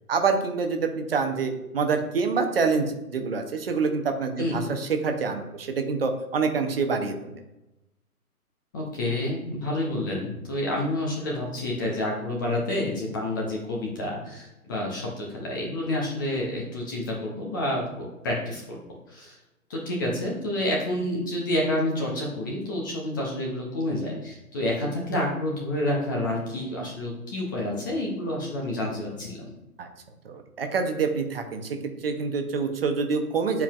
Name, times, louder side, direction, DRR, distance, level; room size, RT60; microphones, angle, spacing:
voice 1, 0.1-7.3 29.8-29.9 30.2-33.6, right 4 dB, 40° right, 5 dB, 0.8 m, -26 dB
voice 2, 4.4-4.7 8.7-18.8 19.1-19.4 19.7-29.4, left 1 dB, 15° left, -3 dB, 0.6 m, -29 dB
9.7 x 4.6 x 2.4 m, 0.94 s
figure-of-eight pair, 130°, 45 cm